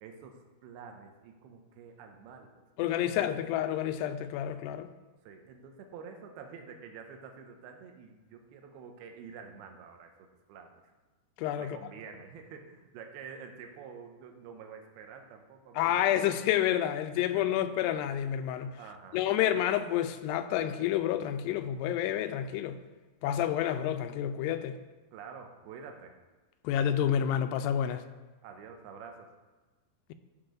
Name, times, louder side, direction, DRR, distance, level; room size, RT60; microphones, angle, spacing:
voice 1, 0.0-2.6 3.1-3.5 5.2-10.8 11.6-16.1 17.2-17.7 18.8-19.5 25.1-26.1 28.4-29.3, right 6 dB, 75° right, 2.8 m, -48 dB
voice 2, 2.8-4.9 11.4-11.8 15.8-18.8 19.1-22.8 23.2-24.8 26.6-28.0, left 10 dB, 90° left, 2.7 m, -29 dB
14.5 x 6.0 x 3.9 m
omnidirectional pair, 4.7 m